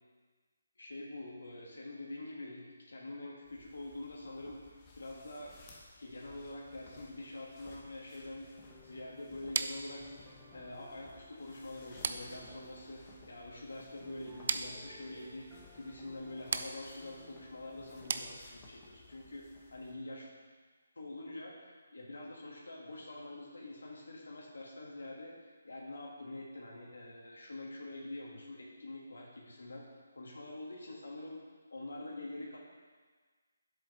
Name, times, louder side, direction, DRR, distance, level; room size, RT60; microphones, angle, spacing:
voice 1, 0.8-5.5 6.0-8.5 8.8-20.3 21.0-29.8 30.1-31.4 31.7-32.6, left 2 dB, 85° left, -3 dB, 2.1 m, -46 dB
sound 1, 3.4-19.9, left 3 dB, 20° left, 1.2 m, -59 dB
sound 2, 8.7-18.4, left 1 dB, ahead, 0.9 m, -58 dB
sound 3, 9.5-18.9, right 5 dB, 50° right, 0.5 m, -41 dB
10.5 x 7.8 x 3.5 m, 1.5 s
hypercardioid pair, 165°, 0 cm